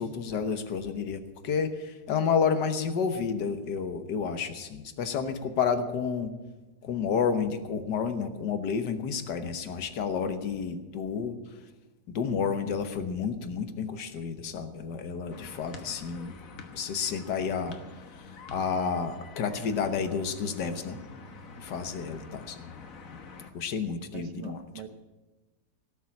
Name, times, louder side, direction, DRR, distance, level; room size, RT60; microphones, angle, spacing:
voice 1, 0.0-6.4 6.8-11.4 12.2-16.3 16.7-17.8 18.5-21.0 21.6-22.6 23.5-24.6, left 6 dB, 90° left, 9 dB, 1.8 m, -30 dB
sound 1, 15.3-23.5, left 4 dB, 55° left, 1.6 m, -47 dB
voice 2, 24.1-24.9, right 9 dB, 90° right, 9 dB, 1.6 m, -43 dB
17.5 x 7.3 x 8.6 m, 1.2 s
omnidirectional pair, 1.8 m